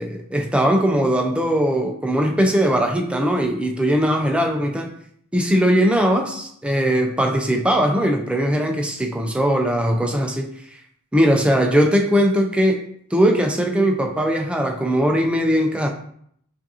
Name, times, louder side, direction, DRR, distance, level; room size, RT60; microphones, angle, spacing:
voice 1, 0.0-4.9 5.3-10.5 11.1-12.8 13.1-15.9, equal, 5° right, 2 dB, 0.4 m, -19 dB
5.0 x 2.5 x 2.7 m, 0.67 s
head